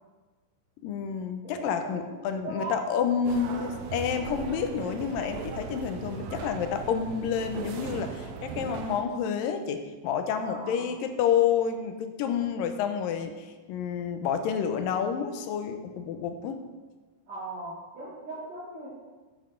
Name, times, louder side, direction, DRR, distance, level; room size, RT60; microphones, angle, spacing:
voice 1, 0.8-16.6, left 7 dB, 80° left, 7 dB, 2.3 m, -29 dB
voice 2, 1.4-3.1 10.4-10.9 17.3-18.9, right 2 dB, 50° right, -13 dB, 4.3 m, -39 dB
sound 1, 3.2-9.0, right 5 dB, 75° right, 1.8 m, -38 dB
9.9 x 9.5 x 3.8 m, 1.3 s
omnidirectional pair, 4.1 m